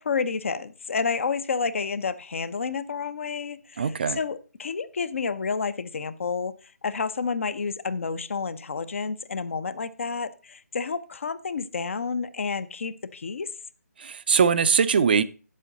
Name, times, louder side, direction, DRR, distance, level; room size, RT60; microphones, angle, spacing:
voice 1, 0.0-6.5 6.8-13.5, left 5 dB, 50° left, 0.6 m, -30 dB
voice 2, 3.8-4.2 14.0-15.2, right 6 dB, 35° right, 0.4 m, -21 dB
8.2 x 7.5 x 3.9 m
figure-of-eight pair, 150°, 9 cm